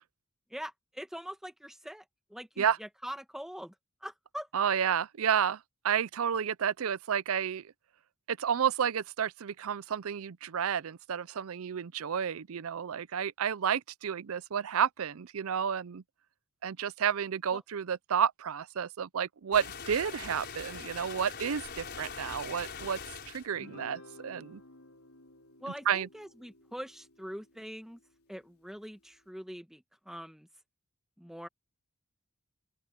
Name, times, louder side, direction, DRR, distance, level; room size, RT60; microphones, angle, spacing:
voice 1, 0.5-2.0 2.3-3.7 4.0-4.5 17.5-17.6 25.6-28.0 28.3-30.5 31.2-31.5, equal, ahead, 1.4 m, -43 dB
voice 2, 4.5-5.6 5.8-7.6 8.3-16.0 16.6-23.0 23.3-24.6 25.9-26.1, right 8 dB, 70° right, 0.5 m, -31 dB
sound 1, 19.5-23.5, left 6 dB, 50° left, 5.0 m, -42 dB
Guitar, 23.5-28.2, left 1 dB, 75° left, 3.8 m, -54 dB
open air
head